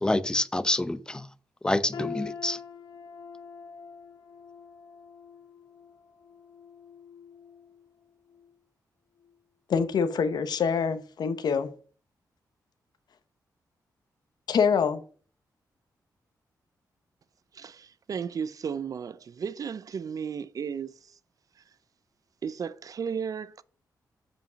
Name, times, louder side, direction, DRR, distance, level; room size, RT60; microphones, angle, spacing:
voice 1, 0.0-1.3 1.6-2.6, left 2 dB, 10° left, 0.6 m, -27 dB
sound 1, 1.9-7.9 8.3-8.5 9.2-9.3, left 6 dB, 90° left, 1.9 m, -44 dB
voice 2, 9.7-11.7 14.5-15.0, left 6 dB, 75° left, 1.0 m, -25 dB
voice 3, 17.5-21.2 22.4-23.6, right 7 dB, 55° right, 0.5 m, -34 dB
7.8 x 5.2 x 5.7 m
cardioid pair, 95°, 7 cm